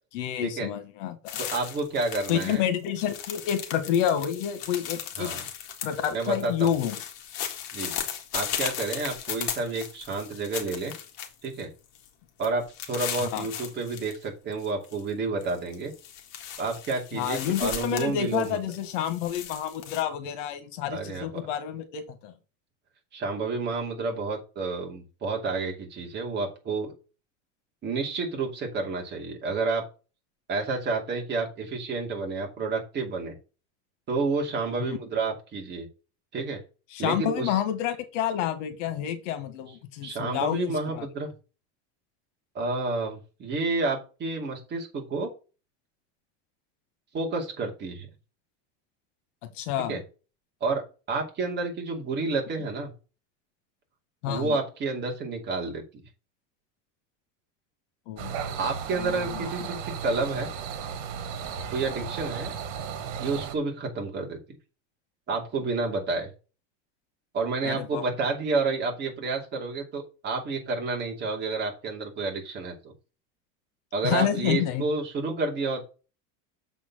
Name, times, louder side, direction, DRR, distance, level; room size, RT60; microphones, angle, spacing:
voice 1, 0.1-1.2 2.3-5.3 5.8-7.0 13.3-13.5 17.1-22.3 34.8-35.0 36.9-41.1 49.5-50.0 54.2-54.6 58.1-58.5 59.0-59.5 67.6-68.0 74.0-74.8, left 10 dB, 80° left, 9 dB, 1.7 m, -29 dB
sound 1, 1.3-2.6 2.8-11.6 11.9-12.1 12.4-14.2 14.5-15.0 15.4-20.0, left 9 dB, 55° left, 1.9 m, -37 dB
voice 2, 1.4-2.6 5.2-5.4 6.1-6.7 7.7-7.9 8.3-10.9 11.4-11.7 12.4-15.9 16.6-18.6 20.9-21.3 23.1-26.9 27.8-29.9 30.5-33.3 34.1-35.9 36.3-36.6 37.0-37.6 40.0-41.3 42.5-45.3 47.1-48.1 49.9-50.0 50.6-50.8 51.1-52.9 54.3-56.0 58.6-60.5 61.7-62.5 63.2-64.4 65.3-66.3 67.3-72.9 73.9-75.9, right 3 dB, 30° right, 1 dB, 2.6 m, -30 dB
Coyotes with night ambiance, 58.2-63.6, right 7 dB, 80° right, 1.8 m, -35 dB
7.2 x 4.6 x 5.7 m, 0.32 s
cardioid pair, 160°, 37 cm